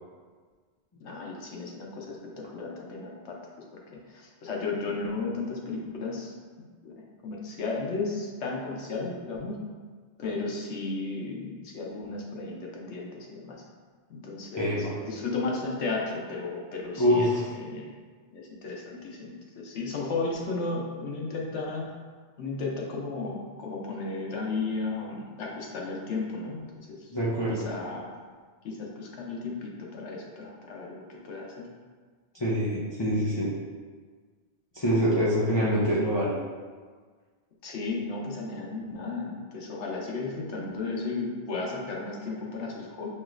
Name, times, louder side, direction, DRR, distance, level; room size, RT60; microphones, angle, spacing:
voice 1, 1.0-3.4 4.1-9.6 10.2-13.6 14.1-17.3 17.7-17.9 18.3-21.9 22.4-27.1 27.5-28.1 28.6-31.7 35.0-35.1 35.4-35.7 37.6-43.1, left 3 dB, 90° left, -1 dB, 1.0 m, -34 dB
voice 2, 14.6-14.9 17.0-17.4 27.1-27.6 32.4-33.5 34.7-36.3, equal, 35° left, -7 dB, 0.4 m, -25 dB
5.4 x 3.0 x 2.4 m, 1.5 s
omnidirectional pair, 1.1 m